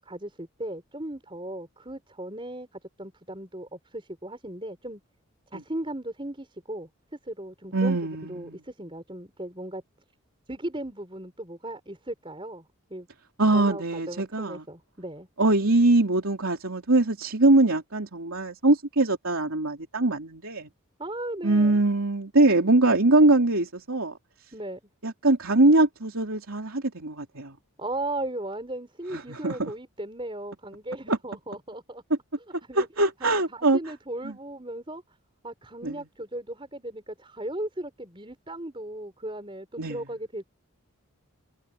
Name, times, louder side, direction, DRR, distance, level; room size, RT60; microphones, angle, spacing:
voice 1, 0.0-2.7 3.0-5.0 5.5-6.9 7.3-9.8 10.5-13.1 13.5-15.3 21.0-21.8 24.5-24.8 27.8-32.0 32.7-32.9 33.2-35.0 35.4-40.4, right 1 dB, 25° right, 4.9 m, -37 dB
voice 2, 7.7-8.6 13.4-14.6 15.4-20.7 21.4-24.2 25.0-27.6 29.1-29.7 31.1-31.2 32.7-33.8 34.2-34.4 35.8-36.1 39.8-40.0, right 2 dB, 75° right, 3.1 m, -22 dB
head